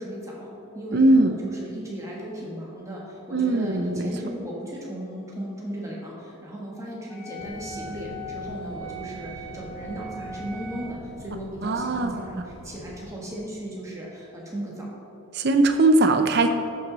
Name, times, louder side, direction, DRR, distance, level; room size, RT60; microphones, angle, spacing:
voice 1, 0.0-14.9, right 1 dB, 15° right, -4 dB, 1.6 m, -36 dB
voice 2, 0.9-1.4 3.3-4.1 11.6-12.3 15.3-16.5, right 2 dB, 50° right, 6 dB, 0.6 m, -20 dB
Wind instrument woodwind instrument, 7.1-11.0, right 1 dB, 10° left, 0.9 m, -40 dB
sound 1, 7.4-13.1, equal, 60° left, 1.1 m, -44 dB
11.5 x 6.1 x 4.1 m, 2.9 s
head